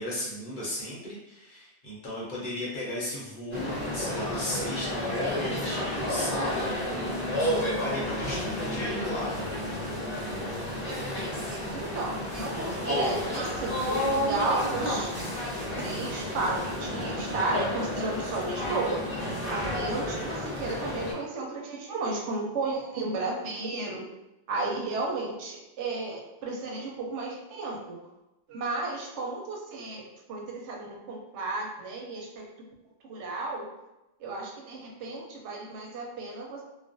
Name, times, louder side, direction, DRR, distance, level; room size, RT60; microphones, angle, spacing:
voice 1, 0.0-9.3, left 1 dB, 50° left, -6 dB, 0.7 m, -36 dB
sound 1, 3.5-21.1, left 1 dB, 10° right, 0.8 m, -31 dB
sound 2, 4.8-11.2, equal, 10° left, 0.4 m, -42 dB
voice 2, 11.1-15.1 15.8-19.0 19.5-24.0 24.5-28.0 28.5-32.4 33.0-33.7 34.2-36.6, right 3 dB, 90° right, -1 dB, 0.9 m, -33 dB
2.4 x 2.0 x 2.5 m, 0.96 s
omnidirectional pair, 1.2 m